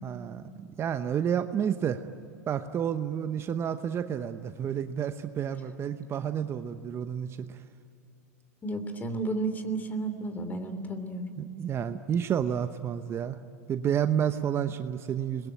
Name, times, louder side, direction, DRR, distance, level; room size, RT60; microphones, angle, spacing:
voice 1, 0.0-2.0 2.5-7.6 11.4-13.4 13.7-15.5, right 8 dB, 30° right, 9 dB, 1.0 m, -30 dB
voice 2, 8.6-11.2, right 2 dB, 20° left, 9 dB, 3.2 m, -32 dB
29.5 x 22.0 x 9.0 m, 2.7 s
hypercardioid pair, 100°, 8 cm